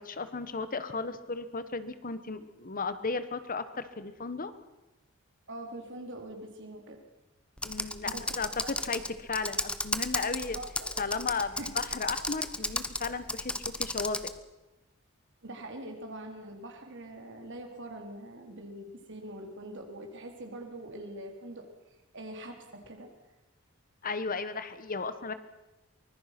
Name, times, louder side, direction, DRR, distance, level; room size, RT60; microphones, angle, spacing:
voice 1, 0.0-4.5 7.6-10.6 11.0-13.5 13.8-14.3 24.0-25.3, left 4 dB, 40° left, 12 dB, 1.2 m, -35 dB
voice 2, 5.5-7.0 8.0-8.3 10.5-11.0 11.5-11.7 15.4-21.6 22.1-23.1, right 1 dB, 60° right, 3 dB, 3.9 m, -43 dB
Computer keyboard, 7.6-14.4, left 2 dB, 5° left, 1.0 m, -34 dB
24.0 x 20.5 x 6.0 m, 1.0 s
head